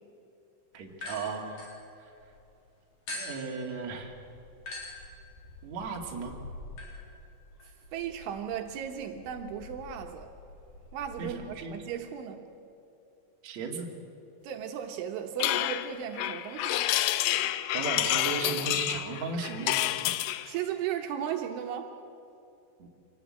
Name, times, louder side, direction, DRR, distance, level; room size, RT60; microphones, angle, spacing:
voice 1, 0.7-1.7 2.0-2.1 3.1-4.1 5.6-6.3 11.2-11.9 13.4-13.9 17.7-19.9 22.8-22.9, right 4 dB, 45° right, 0 dB, 2.9 m, -36 dB
sound 1, 0.9-2.4 3.1-11.4, left 2 dB, 45° left, 5.7 m, -45 dB
voice 2, 7.9-10.3 10.9-12.5 14.4-16.9 20.4-21.9, right 9 dB, 75° right, 4 dB, 3.5 m, -36 dB
sound 2, 15.4-20.5, left 14 dB, 85° left, 3.3 m, -29 dB
26.0 x 18.5 x 8.7 m, 2.7 s
omnidirectional pair, 5.7 m